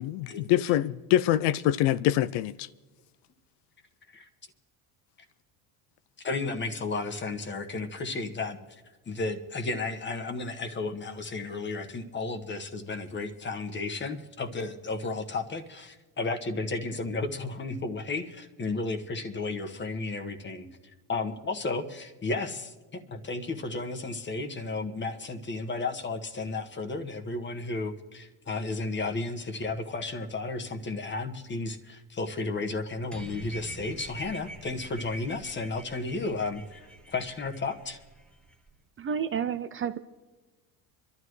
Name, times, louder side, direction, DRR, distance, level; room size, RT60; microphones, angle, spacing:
voice 1, 0.0-2.7, left 12 dB, 75° left, 0.5 m, -25 dB
voice 2, 6.2-8.8 9.1-20.7 21.1-22.7 23.1-38.0, left 3 dB, 25° left, 1.4 m, -33 dB
sound 1, 33.1-38.7, right 1 dB, ahead, 1.3 m, -45 dB
voice 3, 39.0-40.0, right 7 dB, 30° right, 0.5 m, -30 dB
25.5 x 12.5 x 3.2 m
supercardioid pair, 105°, 42 cm